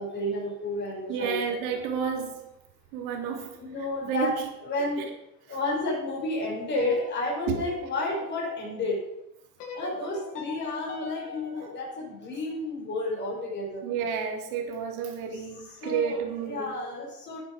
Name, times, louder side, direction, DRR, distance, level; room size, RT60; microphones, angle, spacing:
voice 1, 0.0-1.4 3.6-5.1 5.5-9.0 9.7-13.8 15.3-15.4 15.8-17.4, left 2 dB, 20° left, -3 dB, 4.7 m, -31 dB
voice 2, 1.1-2.4 2.9-3.6 4.0-4.3 5.0-5.1 7.5-7.6 13.8-16.7, right 7 dB, 55° right, 3 dB, 3.0 m, -30 dB
sound 1, 6.7-8.9 9.6-12.7, left 5 dB, 65° left, 5.2 m, -43 dB
11.5 x 9.1 x 5.1 m, 0.83 s
supercardioid pair, 120°, 50 cm